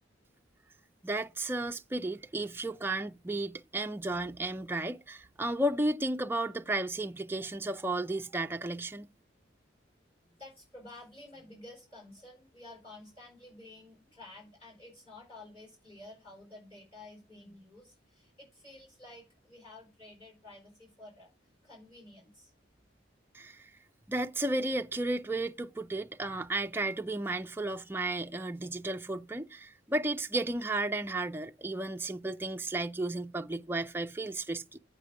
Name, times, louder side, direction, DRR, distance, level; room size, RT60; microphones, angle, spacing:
voice 1, 1.0-9.1 23.3-23.7 24.1-34.8, right 2 dB, 10° right, 0.4 m, -33 dB
voice 2, 10.2-21.3 21.6-22.5, left 2 dB, 30° left, 4.4 m, -51 dB
8.4 x 5.2 x 5.0 m
head